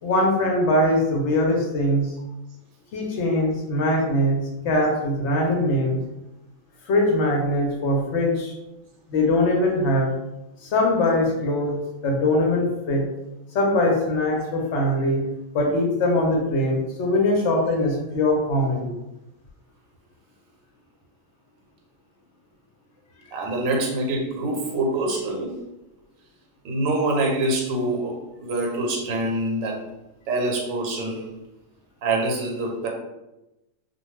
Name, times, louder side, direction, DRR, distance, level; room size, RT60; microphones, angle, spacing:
voice 1, 0.0-2.1 2.9-6.0 6.9-8.5 9.1-10.1 10.6-13.1 13.5-15.3 15.5-18.9, left 1 dB, 65° left, 0 dB, 0.8 m, -22 dB
voice 2, 23.3-25.5 26.6-29.8 30.3-31.3 32.0-32.9, right 2 dB, 80° right, 0 dB, 1.0 m, -25 dB
2.2 x 2.2 x 3.1 m, 0.95 s
omnidirectional pair, 1.4 m